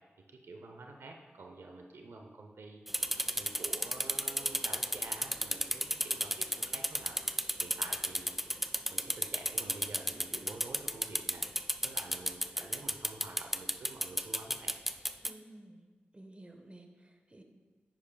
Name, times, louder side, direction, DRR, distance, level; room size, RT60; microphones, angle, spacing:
voice 1, 0.3-3.0 3.3-7.2 7.6-8.4 8.9-11.5 11.8-14.7, right 3 dB, 85° right, 3 dB, 0.7 m, -48 dB
sound 1, 2.9-15.3, equal, 5° right, 0.4 m, -33 dB
voice 2, 15.2-15.8 16.1-17.4, right 1 dB, 30° right, 4 dB, 1.1 m, -53 dB
10.0 x 8.7 x 2.3 m, 1.4 s
cardioid pair, 55°, 4 cm